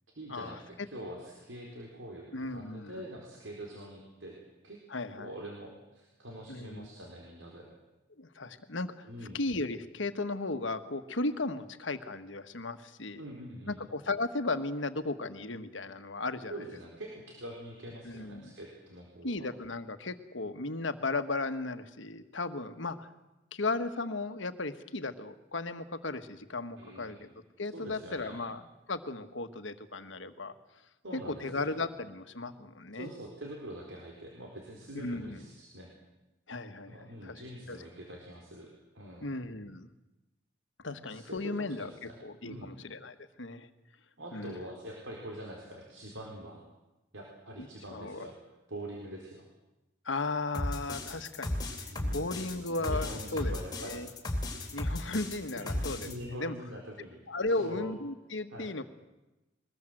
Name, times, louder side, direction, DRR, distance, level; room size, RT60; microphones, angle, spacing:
voice 1, 0.1-4.8 5.2-7.7 9.1-9.4 13.2-13.8 16.5-19.5 26.8-27.2 27.7-28.4 31.0-31.7 32.9-35.9 36.9-39.3 40.8-42.2 42.4-42.7 44.2-46.6 47.1-48.3 48.7-49.5 51.9-52.3 52.8-54.0 55.6-57.2 57.5-57.9 58.5-58.7, equal, 85° right, -1 dB, 4.3 m, -44 dB
voice 2, 2.3-3.0 4.9-5.3 6.5-6.9 8.2-9.1 9.3-13.2 13.7-16.5 18.0-18.5 19.2-23.1 23.5-27.3 27.6-28.6 28.9-30.5 31.1-33.1 34.9-35.4 36.5-36.9 37.2-37.4 37.7-37.8 39.2-39.9 40.8-43.7 44.3-44.6 47.6-47.7 47.9-48.3 50.0-51.7 52.1-54.1 54.7-56.1 56.4-56.5 57.3-58.8, left 2 dB, 80° left, 10 dB, 1.5 m, -35 dB
sound 1, 50.5-56.1, left 1 dB, 20° left, 3.4 m, -35 dB
22.5 x 20.0 x 7.9 m, 1.0 s
head